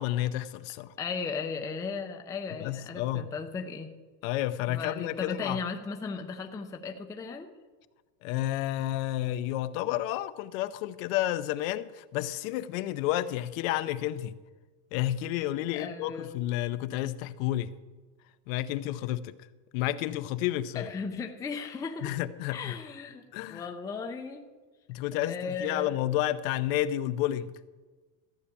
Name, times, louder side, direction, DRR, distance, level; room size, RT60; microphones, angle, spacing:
voice 1, 0.0-0.9 2.6-3.3 4.2-5.6 8.2-14.3 14.9-17.7 18.5-19.4 19.7-20.9 22.0-22.8 23.3-23.7 24.9-27.5, left 13 dB, 55° left, 0.7 m, -31 dB
voice 2, 1.0-4.0 4.7-7.5 15.7-16.3 20.7-22.1 22.5-23.2 23.5-24.4 25.2-26.0, left 5 dB, 5° left, 0.5 m, -36 dB
14.5 x 5.7 x 8.4 m
supercardioid pair, 145°, 49 cm